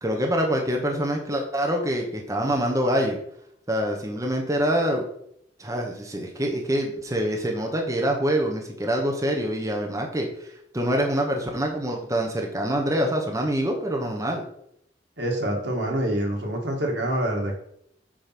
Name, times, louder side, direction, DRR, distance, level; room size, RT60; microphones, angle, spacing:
voice 1, 0.0-3.2 3.7-5.0 5.6-10.5 10.7-14.4, equal, 20° right, 1 dB, 1.0 m, -25 dB
voice 2, 15.2-17.6, right 1 dB, 80° right, 0 dB, 2.0 m, -26 dB
8.5 x 3.1 x 5.9 m, 0.71 s
head